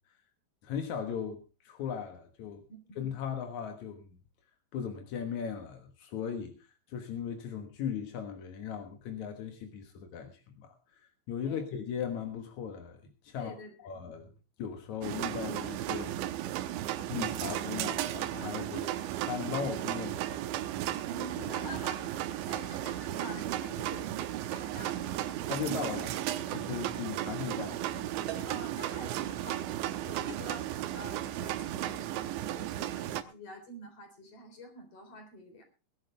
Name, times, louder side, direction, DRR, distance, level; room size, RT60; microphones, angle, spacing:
voice 1, 0.6-2.6 3.0-4.1 4.7-11.0 11.3-14.3 14.6-16.1 17.1-19.0 19.2-20.6 25.5-28.5, left 7 dB, 65° left, 1.9 m, -38 dB
voice 2, 13.3-14.0 21.1-25.2 28.4-35.6, equal, 35° left, 4.2 m, -47 dB
sound 1, 15.0-33.2, right 13 dB, 85° right, 3.2 m, -35 dB
sound 2, 28.3-28.7 30.3-30.7, right 8 dB, 70° right, 4.2 m, -43 dB
21.0 x 11.5 x 3.3 m
omnidirectional pair, 5.2 m